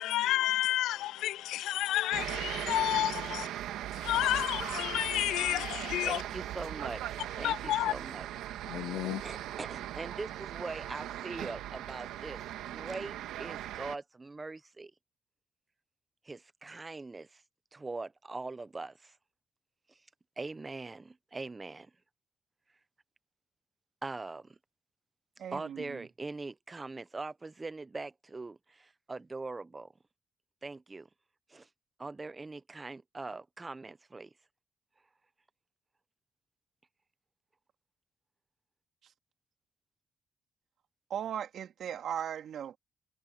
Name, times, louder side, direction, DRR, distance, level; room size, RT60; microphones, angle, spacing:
voice 1, 0.0-3.5 4.0-6.2 7.4-7.9 8.7-9.2, left 14 dB, 85° left, 0.5 m, -30 dB
sound 1, 2.1-14.0, right 12 dB, 90° right, 1.6 m, -39 dB
voice 2, 6.0-8.3 9.2-14.9 16.2-17.4 17.7-19.1 19.9-20.0 20.4-21.9 24.0-24.6 25.5-29.9 30.6-31.1 31.5-31.7 32.0-34.3, right 3 dB, 25° right, 0.9 m, -42 dB
voice 3, 25.4-26.1 39.0-39.1 41.1-42.8, right 9 dB, 65° right, 2.9 m, -38 dB
cardioid pair, 90°, 0 cm